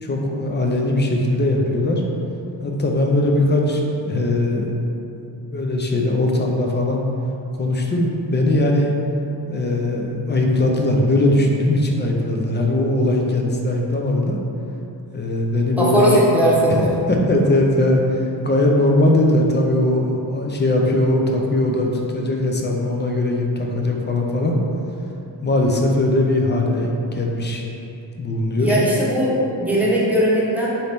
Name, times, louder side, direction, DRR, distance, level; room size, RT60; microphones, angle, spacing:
voice 1, 0.0-2.0 2.6-4.7 5.5-7.0 7.6-8.9 9.5-14.4 15.1-16.5 17.1-24.5 25.4-27.6 28.2-28.7, left 1 dB, 25° left, 0 dB, 0.4 m, -20 dB
voice 2, 15.8-16.9 28.6-30.7, equal, 5° right, -7 dB, 0.9 m, -18 dB
3.9 x 2.8 x 3.4 m, 2.9 s
cardioid pair, 85°, 45 cm